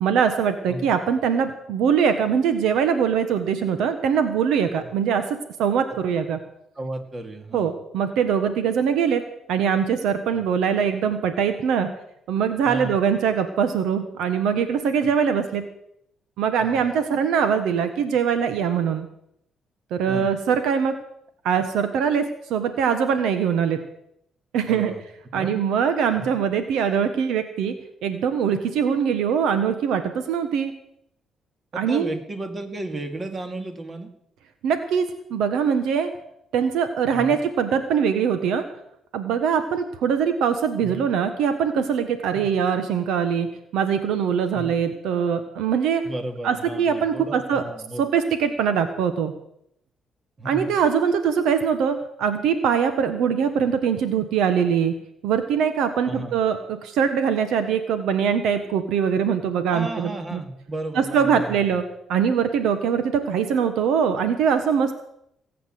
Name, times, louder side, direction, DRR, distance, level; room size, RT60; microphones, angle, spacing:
voice 1, 0.0-5.2 5.6-6.4 7.5-9.2 9.5-11.9 12.3-15.6 16.4-19.1 19.9-20.9 21.4-23.8 24.5-24.9 25.3-27.7 28.0-30.7 31.7-32.1 34.6-36.1 36.5-38.6 39.1-43.5 43.7-46.0 46.4-47.6 48.0-49.3 50.4-54.9 55.2-60.4 60.9-61.8 62.1-64.9, right 7 dB, 85° right, 9 dB, 1.3 m, -22 dB
voice 2, 6.7-7.7 12.6-12.9 15.0-15.1 16.6-16.8 20.1-20.3 24.7-25.0 25.3-25.6 26.2-26.3 31.7-34.1 37.1-37.4 40.8-41.0 42.3-42.5 44.5-44.8 46.0-48.0 50.4-50.7 56.0-56.4 59.7-61.8, right 2 dB, 30° right, 6 dB, 2.4 m, -33 dB
18.5 x 8.5 x 7.7 m, 0.76 s
cardioid pair, 90°, 0 cm